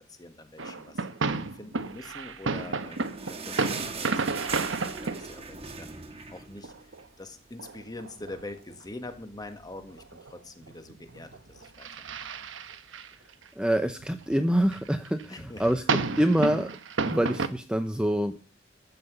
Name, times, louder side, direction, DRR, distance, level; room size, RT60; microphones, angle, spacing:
voice 1, 0.1-1.1 1.5-6.0 6.3-6.9 7.2-12.2 15.3-15.6, left 2 dB, 20° left, 7 dB, 1.6 m, -44 dB
sound 1, 0.6-5.3 5.6-5.7 6.6-7.0 7.6-8.4 8.7-8.8 9.1-9.2 9.5-9.6 9.7-10.3 10.6-13.5 13.9-14.3 14.6-17.5, right 4 dB, 80° right, 1.0 m, -32 dB
sound 2, 2.4-7.2 7.6-7.7 7.9-8.1 8.8-8.9, right 4 dB, 30° right, 1.7 m, -39 dB
voice 2, 13.6-16.7 17.0-18.4, equal, 5° right, 8 dB, 0.7 m, -26 dB
13.0 x 5.8 x 8.1 m, 0.37 s
head